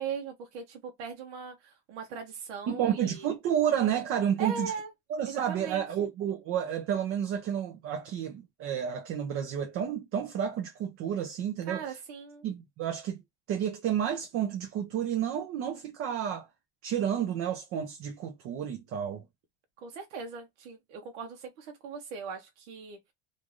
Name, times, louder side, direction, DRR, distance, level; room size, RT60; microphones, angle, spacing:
voice 1, 0.0-3.3 4.4-4.9 5.3-6.1 11.6-12.5 19.8-23.0, right 6 dB, 80° right, 0.8 m, -39 dB
voice 2, 2.7-4.7 5.1-11.8 12.4-13.2 13.5-16.5 16.8-19.2, right 9 dB, 40° right, 0.6 m, -30 dB
3.1 x 2.5 x 2.5 m
supercardioid pair, 145°, 34 cm